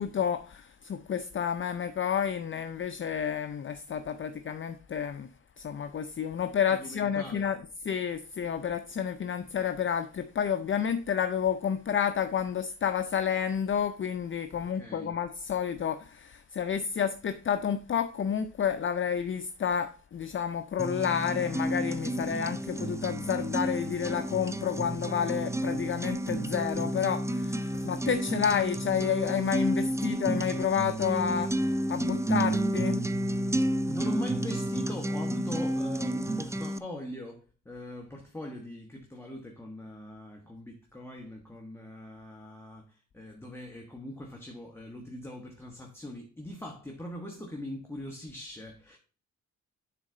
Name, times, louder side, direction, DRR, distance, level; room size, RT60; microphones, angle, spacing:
voice 1, 0.0-5.3 5.6-33.1, left 8 dB, 40° left, 0.5 m, -30 dB
voice 2, 6.7-7.5 14.5-15.1 33.9-49.0, equal, 10° left, 1.3 m, -41 dB
sound 1, 20.8-36.8, right 1 dB, 10° right, 0.4 m, -31 dB
10.0 x 4.1 x 3.8 m
cardioid pair, 105°, 30 cm